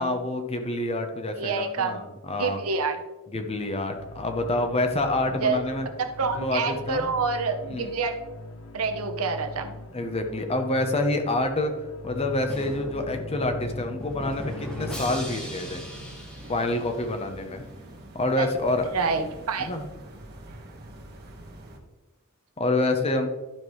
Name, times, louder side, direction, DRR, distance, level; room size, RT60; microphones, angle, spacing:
voice 1, 0.0-2.6 3.3-5.9 6.2-7.1 7.6-7.9 9.9-11.7 12.0-15.8 16.5-17.6 18.1-18.9 19.6-19.9 22.6-23.3, left 2 dB, 30° left, 5 dB, 0.8 m, -27 dB
voice 2, 1.4-2.0 2.4-3.0 5.4-5.6 6.2-8.1 8.7-9.8 18.4-18.5 18.9-19.7, right 4 dB, 80° right, 5 dB, 0.9 m, -27 dB
sound 1, 3.9-15.5, left 2 dB, 65° left, 0.7 m, -41 dB
Drum, 12.5-17.3, equal, 5° left, 1.2 m, -38 dB
sound 2, 15.2-21.8, right 1 dB, 50° right, 1.4 m, -45 dB
11.5 x 5.3 x 3.2 m, 1.1 s
head